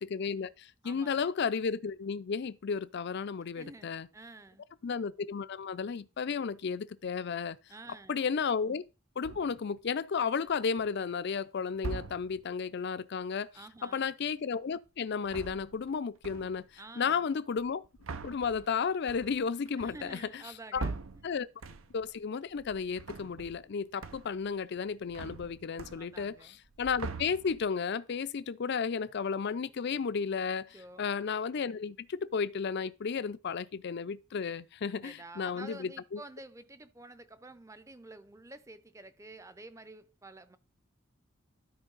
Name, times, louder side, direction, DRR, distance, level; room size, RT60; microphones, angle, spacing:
voice 1, 0.0-4.1 4.8-7.6 8.1-8.8 9.2-13.5 13.8-16.7 17.0-17.8 18.2-20.2 20.7-20.8 21.2-21.5 21.9-26.4 26.8-36.2, left 6 dB, 55° left, 0.4 m, -33 dB
voice 2, 0.8-1.3 3.5-4.6 7.7-8.2 13.5-14.1 16.8-17.3 19.8-21.0 26.0-26.6 30.7-31.1 34.9-40.6, right 2 dB, 15° right, 0.6 m, -50 dB
sound 1, 9.2-9.7 10.5-11.0 11.8-12.5 15.1-16.0 16.2-16.8 17.6-22.2 22.5-23.7 24.0-24.5 24.8-26.4 26.6-27.8, right 3 dB, 80° right, 0.7 m, -43 dB
12.5 x 4.5 x 3.9 m
head